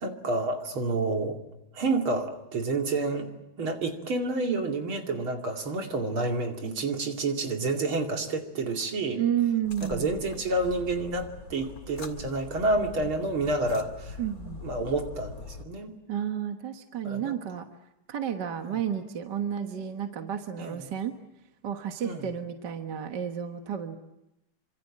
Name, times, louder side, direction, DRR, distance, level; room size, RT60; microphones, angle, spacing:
voice 1, 0.0-1.4 1.7-3.3 3.6-9.2 9.8-14.2 14.6-15.9 17.1-17.3 18.6-18.8 20.6-20.8 22.0-22.3, right 2 dB, 75° right, 3 dB, 3.5 m, -29 dB
voice 2, 9.2-10.1 14.2-14.6 16.1-17.7 18.1-21.1 21.6-24.0, right 9 dB, 55° right, 5 dB, 1.9 m, -31 dB
sound 1, 9.6-15.6, left 4 dB, 45° left, 2.5 m, -43 dB
27.5 x 25.5 x 7.5 m, 0.91 s
omnidirectional pair, 2.3 m